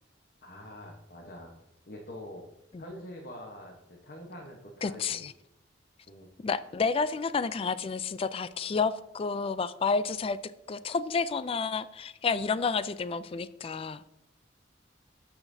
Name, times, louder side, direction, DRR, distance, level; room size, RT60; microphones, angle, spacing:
voice 1, 0.4-1.6 1.9-2.4 2.8-5.2 6.1-6.3, left 1 dB, 50° left, 0 dB, 1.1 m, -45 dB
voice 2, 4.8-5.3 6.4-10.4 10.7-14.0, left 5 dB, 30° left, 15 dB, 0.3 m, -30 dB
13.0 x 5.8 x 2.7 m, 0.92 s
head